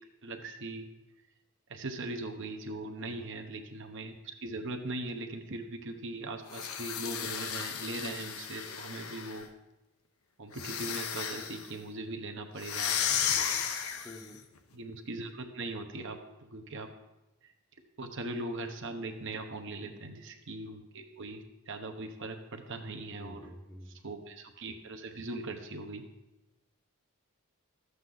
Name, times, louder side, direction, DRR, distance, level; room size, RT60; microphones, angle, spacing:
voice 1, 0.2-0.9 1.7-9.5 10.4-13.6 14.7-16.9 18.0-23.5 23.9-26.0, right 2 dB, 55° right, 5 dB, 0.9 m, -40 dB
voice 2, 3.0-3.3 14.0-14.4 19.8-20.0 23.1-24.0, left 1 dB, 10° left, 3 dB, 0.8 m, -49 dB
sound 1, 6.5-9.5 10.5-11.7 12.6-14.3, left 8 dB, 75° left, 0.8 m, -34 dB
12.5 x 8.0 x 3.9 m, 1.0 s
head